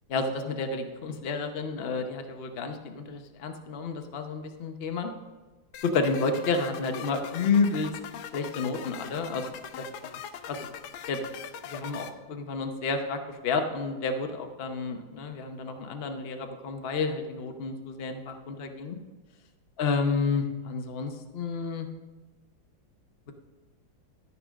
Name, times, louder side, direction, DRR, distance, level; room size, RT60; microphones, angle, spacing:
voice 1, 0.1-5.1 5.8-7.9 8.3-9.5 9.8-10.2 10.5-10.7 11.1-11.2 11.6-19.0 19.8-21.9, left 4 dB, 55° left, 5 dB, 0.6 m, -30 dB
sound 1, 5.7-12.1, left 9 dB, 80° left, 1.5 m, -41 dB
13.0 x 4.9 x 6.3 m, 1.2 s
omnidirectional pair, 2.2 m